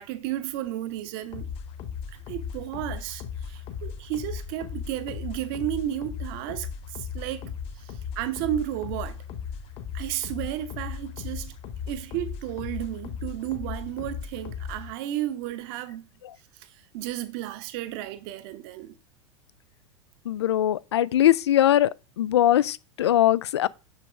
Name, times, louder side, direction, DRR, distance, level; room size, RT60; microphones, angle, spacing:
voice 1, 0.0-1.5 2.1-9.2 9.9-11.5 11.9-16.1 16.6-18.9, right 13 dB, 45° right, 0.9 m, -33 dB
sound 1, 1.3-14.9, left 7 dB, 35° left, 1.1 m, -37 dB
voice 2, 20.3-21.9 22.2-23.7, left 12 dB, 60° left, 0.4 m, -21 dB
6.8 x 6.8 x 3.4 m
figure-of-eight pair, 85°, 16 cm